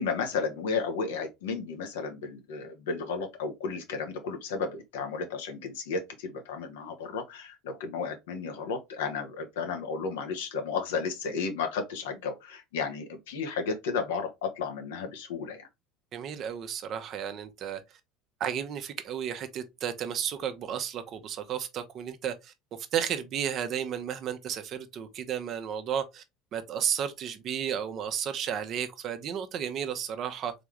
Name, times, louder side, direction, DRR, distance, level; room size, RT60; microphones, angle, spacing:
voice 1, 0.0-15.7, left 5 dB, 75° left, 1.1 m, -33 dB
voice 2, 16.1-17.8 18.4-26.2 26.5-30.5, right 9 dB, 50° right, 0.9 m, -33 dB
4.0 x 3.5 x 3.2 m
hypercardioid pair, 70°, 0 cm